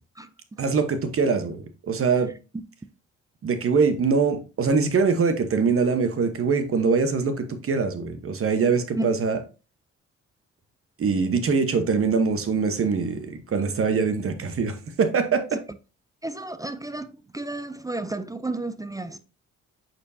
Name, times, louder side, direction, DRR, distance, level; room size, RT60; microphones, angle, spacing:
voice 1, 0.6-2.3 3.4-9.4 11.0-15.6, right 5 dB, 45° right, 1.1 m, -23 dB
voice 2, 16.2-17.1 17.3-19.2, right 2 dB, 10° right, 0.4 m, -31 dB
8.3 x 4.5 x 2.7 m
cardioid pair, 90°, 30 cm